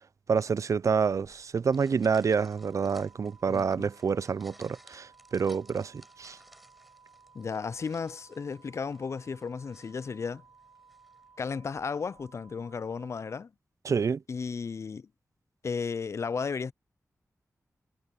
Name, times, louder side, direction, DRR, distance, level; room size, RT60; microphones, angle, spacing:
voice 1, 0.3-6.4 13.8-14.2, right 5 dB, 65° right, 0.4 m, -28 dB
sound 1, 1.1-12.5, equal, ahead, 6.7 m, -59 dB
sound 2, 2.5-13.4, right 5 dB, 85° right, 3.8 m, -58 dB
voice 2, 3.5-3.9 7.3-10.4 11.4-13.5 14.3-15.1 15.6-16.7, left 5 dB, 55° left, 0.3 m, -34 dB
wide cardioid pair, 75°, 6 cm